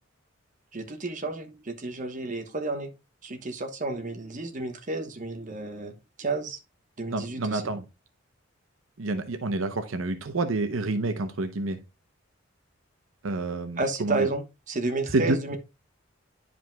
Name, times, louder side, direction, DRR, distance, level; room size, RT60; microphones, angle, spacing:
voice 1, 0.7-2.9 3.2-6.6 7.0-7.6 13.8-15.6, right 2 dB, 40° right, 1.0 m, -31 dB
voice 2, 7.1-7.9 9.0-11.8 13.2-14.3 15.1-15.6, right 2 dB, 75° right, 0.7 m, -28 dB
11.0 x 5.0 x 2.2 m
head